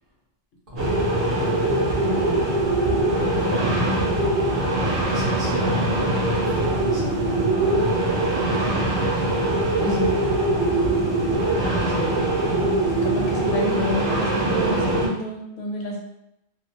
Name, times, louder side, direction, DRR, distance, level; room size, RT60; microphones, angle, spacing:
voice 1, 0.7-1.8 2.8-3.9 5.0-8.3 8.5-10.0, left 3 dB, 55° right, -7 dB, 1.1 m, -34 dB
sound 1, 0.8-15.1, right 2 dB, 75° right, 1.2 m, -22 dB
voice 2, 2.0-2.5 3.4-4.0 5.5-5.7 9.8-10.1 11.9-12.1 12.9-16.0, left 2 dB, 75° left, 0 dB, 0.8 m, -30 dB
3.0 x 2.0 x 2.7 m, 0.84 s
omnidirectional pair, 1.1 m